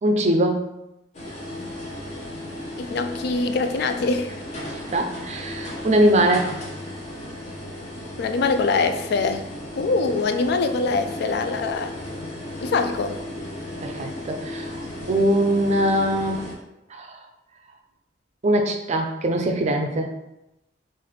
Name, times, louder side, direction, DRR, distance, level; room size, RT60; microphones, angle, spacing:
voice 1, 0.0-0.7 4.7-6.5 13.8-16.4 16.9-17.3 18.4-20.1, right 1 dB, 35° right, 4 dB, 0.4 m, -22 dB
sound 1, 1.1-16.5, left 1 dB, 40° left, 0.7 m, -35 dB
voice 2, 2.8-4.4 8.2-9.4 9.8-11.9 12.6-13.2, left 4 dB, 60° left, 9 dB, 0.3 m, -23 dB
3.9 x 2.5 x 3.1 m, 0.89 s
head